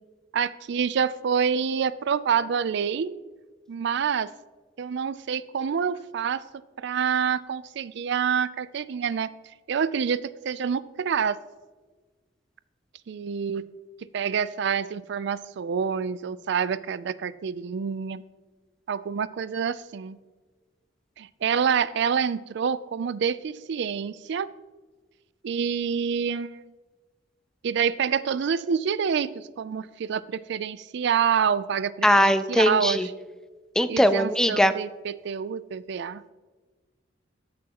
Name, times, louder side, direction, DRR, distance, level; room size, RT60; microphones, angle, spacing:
voice 1, 0.3-3.1 3.7-4.3 4.8-6.4 6.8-9.3 9.7-11.4 13.1-13.6 14.1-18.2 18.9-20.2 21.2-24.5 25.4-26.7 27.6-33.1 33.9-36.2, right 7 dB, 65° right, 17 dB, 0.4 m, -27 dB
voice 2, 32.0-33.1 33.8-34.7, equal, 5° left, 11 dB, 0.4 m, -20 dB
14.5 x 6.3 x 2.9 m, 1.3 s
head